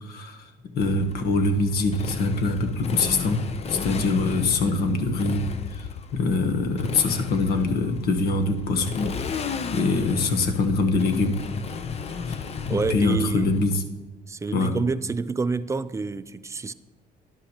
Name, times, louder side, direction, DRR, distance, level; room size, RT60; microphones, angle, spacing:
voice 1, 0.0-3.4 3.7-5.4 5.8-9.1 9.7-11.4 12.3-12.4 12.7-13.7 14.5-14.7, left 3 dB, 65° left, 1.2 m, -24 dB
Motorcycle, 0.8-13.7, left 5 dB, 40° left, 0.7 m, -33 dB
voice 2, 12.7-13.5 14.3-16.7, right 4 dB, 15° right, 0.3 m, -28 dB
12.0 x 11.0 x 3.0 m
cardioid pair, 110°, 17 cm